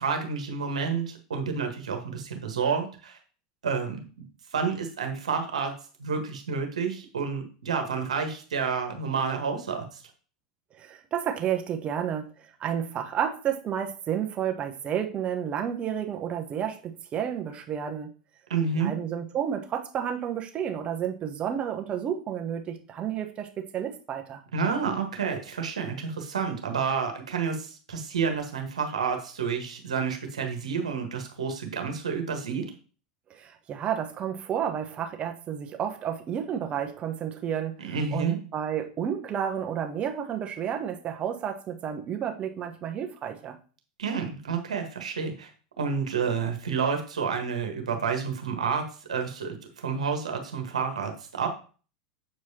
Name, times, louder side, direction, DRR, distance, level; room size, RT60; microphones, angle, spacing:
voice 1, 0.0-3.2 3.6-4.2 4.5-5.7 6.0-10.0 18.5-18.9 24.5-32.7 37.8-38.4 44.0-45.5 45.8-48.8 49.1-51.5, right 5 dB, 80° right, 4 dB, 1.3 m, -29 dB
voice 2, 10.8-12.3 12.6-18.1 18.7-24.4 33.3-43.6, right 9 dB, 35° right, 4 dB, 1.0 m, -31 dB
7.5 x 4.7 x 2.8 m, 0.38 s
hypercardioid pair, 90°, 4 cm